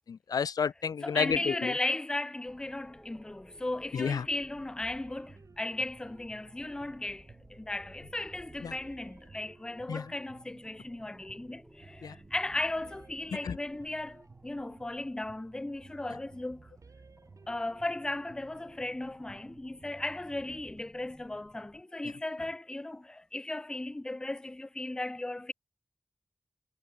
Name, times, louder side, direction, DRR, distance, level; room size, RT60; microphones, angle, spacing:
voice 1, 0.0-1.7 3.9-4.3 8.6-8.7 9.9-10.1 12.0-12.1 13.4-13.6, left 6 dB, 90° left, 0.4 m, -31 dB
voice 2, 1.0-16.7 17.5-25.5, left 2 dB, 10° left, 0.3 m, -36 dB
sound 1, 2.5-21.8, equal, 5° right, 5.2 m, -58 dB
sound 2, 4.8-20.8, right 4 dB, 60° right, 2.7 m, -56 dB
wide cardioid pair, 105°, 6 cm